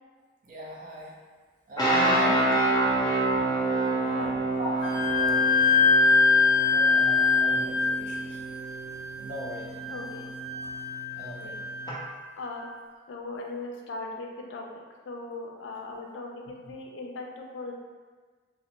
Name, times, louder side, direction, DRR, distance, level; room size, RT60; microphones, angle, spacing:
voice 1, 0.4-1.2 1.7-2.5 4.6-4.9 5.1-5.6 5.9-6.1 6.5-8.4 9.2-9.9 11.2-11.6 15.8-16.0 16.7-16.8, equal, 45° right, -4 dB, 0.4 m, -40 dB
sound 1, 1.8-11.9, right 2 dB, 20° left, 0.4 m, -28 dB
voice 2, 4.1-4.4 9.9-10.3 11.4-11.6 12.4-12.7 13.1-17.7, left 2 dB, 90° left, 0 dB, 0.4 m, -38 dB
Wind instrument woodwind instrument, 4.8-12.2, left 5 dB, 40° left, 0.8 m, -24 dB
2.4 x 2.0 x 2.8 m, 1.4 s
head